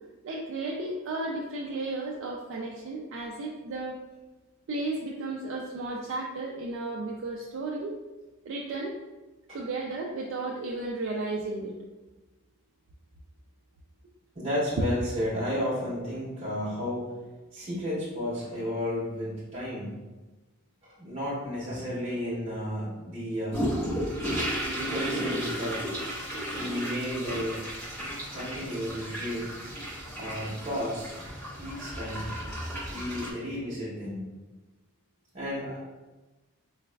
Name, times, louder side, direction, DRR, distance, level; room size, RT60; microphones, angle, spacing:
voice 1, 0.2-4.0 4.7-7.9 8.5-8.9 9.5-11.7, right 2 dB, 65° right, -2 dB, 0.3 m, -34 dB
voice 2, 14.3-17.1 17.5-19.9 21.0-23.6 24.6-25.8 26.5-27.6 28.3-29.4 30.2-31.1 31.6-32.3 32.9-34.2 35.3-35.8, equal, 30° right, -9 dB, 0.7 m, -32 dB
sound 1, 23.5-33.3, equal, 10° left, 0.8 m, -34 dB
3.9 x 2.2 x 2.2 m, 1.2 s
head